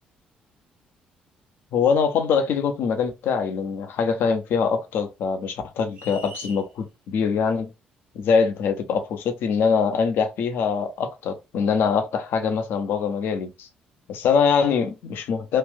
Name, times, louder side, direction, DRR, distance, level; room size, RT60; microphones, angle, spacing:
voice 1, 1.7-7.7 8.1-13.7 14.1-15.6, left 6 dB, 65° left, 0.7 m, -23 dB
sound 1, 5.9-6.7, right 1 dB, 60° right, 1.3 m, -41 dB
3.2 x 2.5 x 3.5 m
hypercardioid pair, 45°, 4 cm